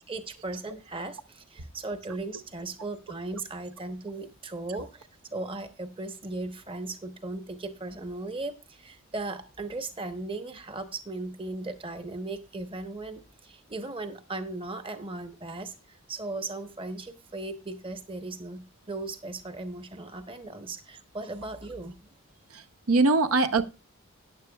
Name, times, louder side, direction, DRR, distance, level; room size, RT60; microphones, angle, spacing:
voice 1, 0.1-22.1, right 2 dB, 25° right, 0.9 m, -37 dB
voice 2, 22.5-23.6, right 3 dB, 80° right, 0.8 m, -23 dB
14.0 x 9.7 x 2.3 m
head